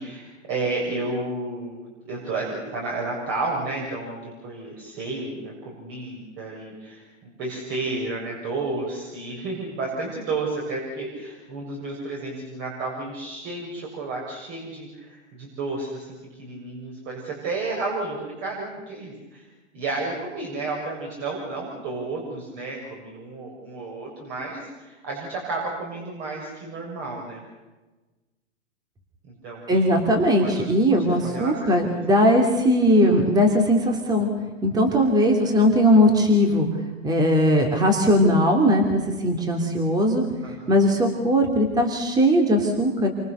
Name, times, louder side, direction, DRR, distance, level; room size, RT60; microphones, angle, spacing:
voice 1, 0.0-19.5 19.7-27.4 29.4-29.9 30.4-30.6 30.9-32.0 40.4-40.9, right 3 dB, 30° right, -1 dB, 6.9 m, -32 dB
voice 2, 29.7-34.3 34.6-36.7 37.0-40.2 40.7-43.1, equal, 10° right, 3 dB, 3.0 m, -19 dB
28.5 x 25.5 x 6.8 m, 1.2 s
hypercardioid pair, 145°, 38 cm